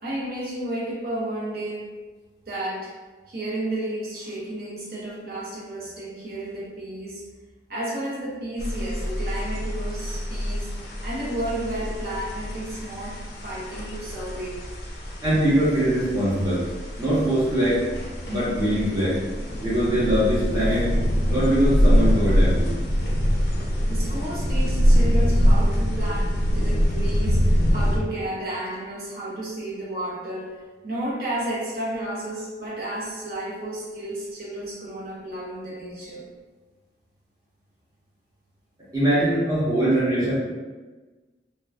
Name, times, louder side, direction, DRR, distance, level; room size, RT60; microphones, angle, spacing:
voice 1, 0.0-1.9 2.5-2.9 3.3-7.3 7.7-10.7 11.0-14.6 23.9-36.2, right 1 dB, 55° right, -6 dB, 0.8 m, -32 dB
sound 1, 8.6-28.0, equal, 60° left, 0.5 m, -24 dB
voice 2, 15.2-16.6 17.0-17.8 18.3-19.2 19.6-20.9 21.3-22.7 38.9-40.3, right 1 dB, 20° right, -10 dB, 0.8 m, -22 dB
2.9 x 2.1 x 2.3 m, 1.3 s
head